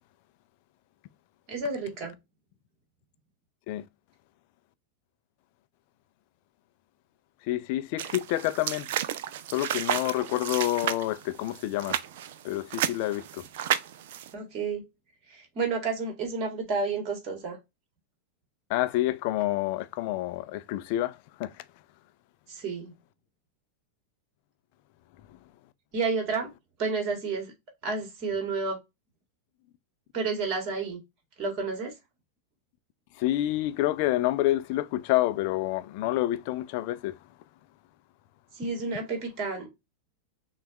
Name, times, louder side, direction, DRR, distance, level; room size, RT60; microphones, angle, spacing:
voice 1, 1.5-2.1 14.3-14.8 15.3-17.6 22.5-22.9 25.9-26.5 26.8-27.5 27.8-28.8 30.1-31.0 31.4-31.9 38.5-39.7, right 4 dB, 35° right, 1.7 m, -30 dB
voice 2, 7.5-8.9 9.5-12.0 12.4-13.4 18.7-21.5 33.2-37.2, left 15 dB, 45° left, 0.4 m, -28 dB
sound 1, 8.0-14.3, right 11 dB, 55° right, 0.4 m, -32 dB
6.1 x 2.4 x 3.0 m
figure-of-eight pair, 90°, 0 cm